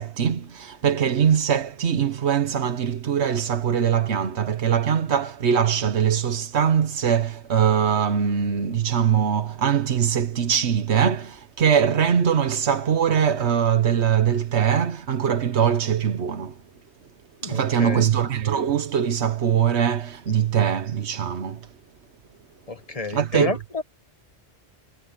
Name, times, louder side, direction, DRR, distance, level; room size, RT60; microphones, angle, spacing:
voice 1, 0.0-16.6 17.4-21.7 23.1-23.5, right 8 dB, 90° right, 1.3 m, -22 dB
voice 2, 17.4-18.1 22.7-23.8, left 2 dB, 35° left, 1.4 m, -30 dB
omnidirectional pair, 1.1 m